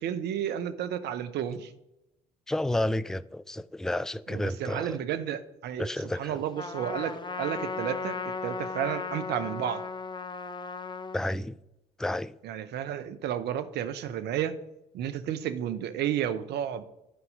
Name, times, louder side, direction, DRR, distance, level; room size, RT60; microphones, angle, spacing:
voice 1, 0.0-1.7 4.3-5.9 6.2-9.8 12.4-14.6 14.9-16.8, right 10 dB, 65° right, 0.8 m, -32 dB
voice 2, 2.5-5.0 5.8-6.4 11.1-11.6 12.0-12.4, left 1 dB, 5° left, 0.4 m, -31 dB
Trumpet, 6.6-11.2, left 4 dB, 25° left, 0.8 m, -36 dB
11.5 x 4.6 x 5.3 m
hypercardioid pair, 55°, 19 cm